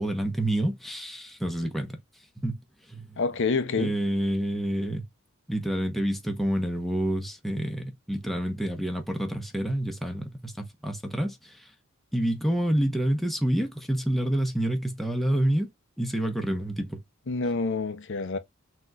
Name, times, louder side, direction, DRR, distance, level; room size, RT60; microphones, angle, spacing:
voice 1, 0.0-2.0 2.4-2.6 2.9-3.2 3.8-5.1 5.5-11.7 12.1-15.7 16.0-17.0, right 1 dB, ahead, 0.9 m, -28 dB
voice 2, 3.2-3.9 17.3-18.4, left 4 dB, 65° left, 0.7 m, -27 dB
6.0 x 3.0 x 2.4 m
head